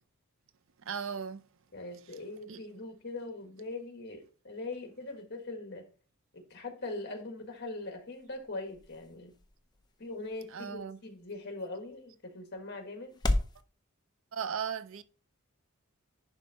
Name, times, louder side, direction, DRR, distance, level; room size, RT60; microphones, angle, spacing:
voice 1, 0.9-1.4 2.5-2.6 10.5-11.0 14.3-15.0, right 7 dB, 65° right, 0.5 m, -36 dB
voice 2, 1.7-5.8 6.3-9.3 10.0-13.2, left 2 dB, 50° left, 1.6 m, -41 dB
sound 1, 7.3-13.6, left 1 dB, 20° left, 0.6 m, -38 dB
10.5 x 3.5 x 4.0 m
head